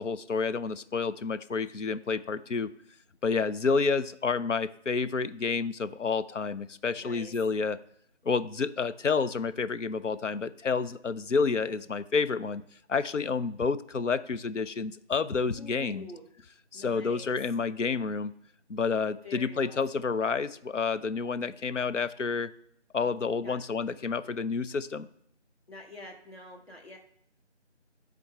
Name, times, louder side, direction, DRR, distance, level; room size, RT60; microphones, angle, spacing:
voice 1, 0.0-2.7 3.2-7.8 8.2-12.6 12.9-16.1 16.7-18.3 18.7-22.5 22.9-25.1, left 5 dB, 90° left, 12 dB, 0.6 m, -29 dB
voice 2, 7.0-7.3 15.5-16.2 16.7-17.4 19.2-20.1 23.4-23.6 25.7-27.0, left 1 dB, 55° left, 0 dB, 1.7 m, -46 dB
10.0 x 3.8 x 3.5 m, 0.69 s
figure-of-eight pair, 175°, 36 cm